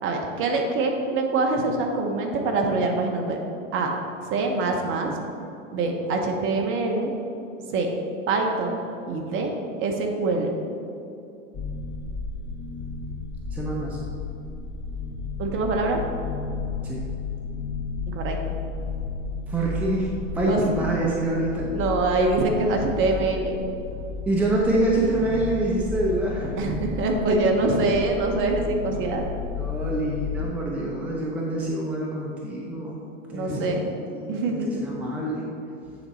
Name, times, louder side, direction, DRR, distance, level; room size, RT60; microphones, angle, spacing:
voice 1, 0.0-3.4 3.7-3.9 4.2-5.2 5.7-7.1 7.7-7.9 8.3-8.8 9.1-9.5 9.8-10.5 15.4-16.0 18.1-18.4 20.5-20.7 21.7-23.6 26.6-29.2 33.3-33.9 34.3-34.8, right 3 dB, 30° right, 2 dB, 0.9 m, -24 dB
sound 1, 11.5-30.4, left 4 dB, 25° left, 0.9 m, -33 dB
voice 2, 13.5-14.0 16.8-17.0 19.5-21.7 24.3-26.5 29.5-33.0 33.3-33.8 34.1-35.4, right 1 dB, 5° right, -3 dB, 0.6 m, -26 dB
8.8 x 4.0 x 4.2 m, 2.6 s
hypercardioid pair, 115°, 39 cm